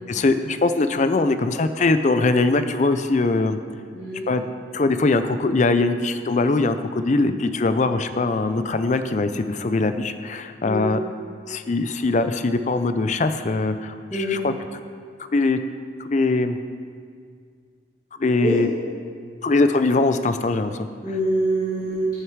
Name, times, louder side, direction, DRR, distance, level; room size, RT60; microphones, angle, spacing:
voice 1, 0.1-3.6 4.3-4.4 4.7-11.0 11.5-14.5 15.3-15.6 16.0-16.6 18.2-18.7 19.4-20.9, left 3 dB, 40° left, 10 dB, 0.4 m, -21 dB
voice 2, 3.9-4.3 10.6-10.9 14.1-14.4 18.4-18.6 21.0-22.1, right 1 dB, 20° left, -11 dB, 2.0 m, -24 dB
14.0 x 6.6 x 4.7 m, 2.1 s
head